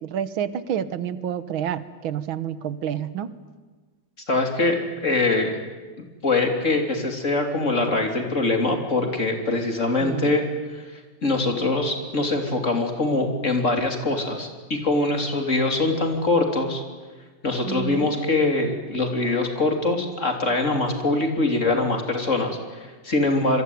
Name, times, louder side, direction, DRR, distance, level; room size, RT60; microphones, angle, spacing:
voice 1, 0.0-3.3 10.0-10.4 17.6-18.1, right 9 dB, 90° right, 14 dB, 1.9 m, -29 dB
voice 2, 4.3-5.5 6.2-10.4 10.7-10.8 11.2-16.8 17.4-23.6, left 2 dB, 35° left, 4 dB, 3.5 m, -23 dB
26.5 x 22.5 x 9.4 m, 1.4 s
omnidirectional pair, 2.2 m